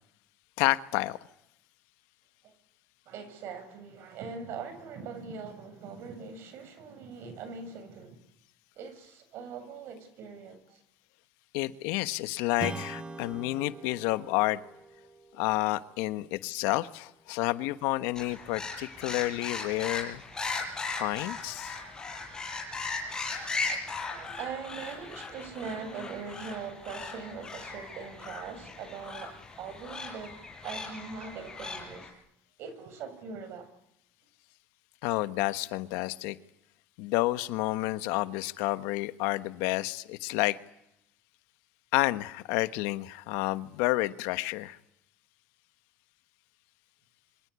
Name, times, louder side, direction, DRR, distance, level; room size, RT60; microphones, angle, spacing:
voice 1, 0.6-1.2 11.5-14.6 15.3-20.2 21.0-21.8 35.0-36.4 37.0-40.6 41.9-44.8, left 19 dB, 85° left, 1.3 m, -30 dB
voice 2, 3.1-8.2 8.8-10.8 24.1-30.4 30.6-32.2 32.6-33.7, right 5 dB, 65° right, 7.3 m, -41 dB
Strum, 12.6-17.5, right 3 dB, 20° right, 1.8 m, -44 dB
sound 1, 18.2-32.1, left 3 dB, 15° left, 6.0 m, -38 dB
27.5 x 25.5 x 8.3 m
cardioid pair, 120°, 5 cm